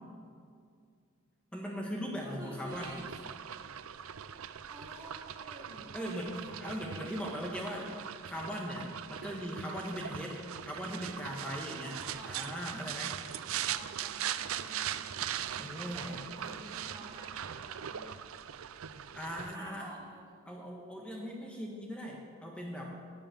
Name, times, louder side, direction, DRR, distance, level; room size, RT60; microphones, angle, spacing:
voice 1, 1.5-3.0 5.9-6.3 6.6-13.1 15.6-16.2 19.1-19.9 20.5-23.0, equal, 5° left, -2 dB, 1.5 m, -39 dB
voice 2, 2.2-3.2 4.7-7.3 7.6-8.0 11.9-12.4 13.6-15.1 15.8-18.1 19.3-20.4, right 1 dB, 15° right, -2 dB, 1.5 m, -50 dB
sound 1, 2.7-19.6, right 9 dB, 75° right, 0.5 m, -40 dB
12.5 x 7.1 x 9.1 m, 2.2 s
head